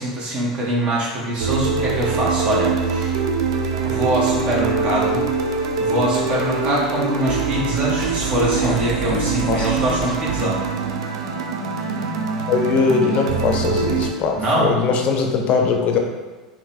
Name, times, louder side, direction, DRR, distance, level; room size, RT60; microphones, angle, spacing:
voice 1, 0.0-3.1 3.8-5.3 5.8-10.6 14.4-14.7, right 1 dB, 40° right, -5 dB, 0.9 m, -23 dB
sound 1, 1.4-14.1, right 4 dB, 75° right, 0.4 m, -23 dB
sound 2, 8.0-10.2, right 1 dB, 5° right, 1.3 m, -33 dB
voice 2, 12.5-16.0, left 5 dB, 45° left, 3 dB, 0.5 m, -20 dB
3.7 x 2.2 x 2.7 m, 1.3 s
hypercardioid pair, 80°, 3 cm